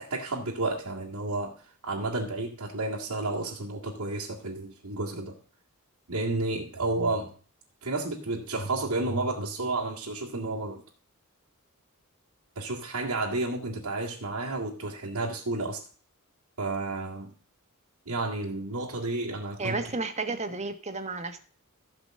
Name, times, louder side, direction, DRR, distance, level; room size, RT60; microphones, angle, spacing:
voice 1, 0.0-5.4 6.1-7.3 7.8-10.8 12.6-15.9 16.6-17.3 18.1-19.8, right 2 dB, 85° right, 2.0 m, -31 dB
voice 2, 19.6-21.4, right 3 dB, 30° right, 1.3 m, -32 dB
15.0 x 5.1 x 7.6 m
head